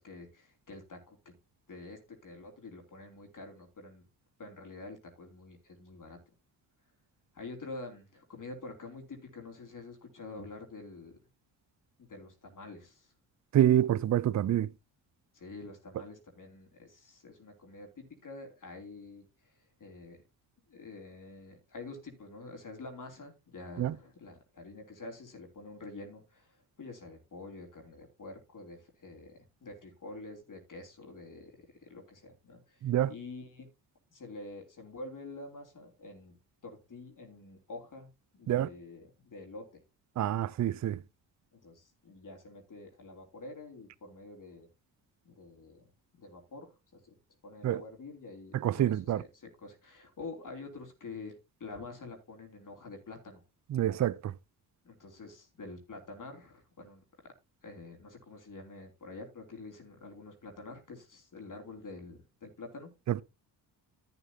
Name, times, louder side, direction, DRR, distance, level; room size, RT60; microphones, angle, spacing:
voice 1, 0.0-1.3 1.7-4.0 4.4-6.2 7.3-11.2 12.0-13.1 15.3-19.5 19.8-20.2 20.7-32.8 33.1-33.7 34.1-36.4 36.6-38.1 38.3-39.8 41.5-44.7 45.2-45.9 46.2-47.2 47.4-53.4 54.8-57.3 57.6-62.9, left 3 dB, 40° left, 3.1 m, -47 dB
voice 2, 13.5-14.7 23.8-23.9 32.8-33.1 38.5-38.7 40.2-41.0 47.6-47.8 48.6-49.2 53.7-54.1, right 11 dB, 40° right, 0.6 m, -26 dB
11.0 x 8.9 x 2.8 m
supercardioid pair, 55°, 46 cm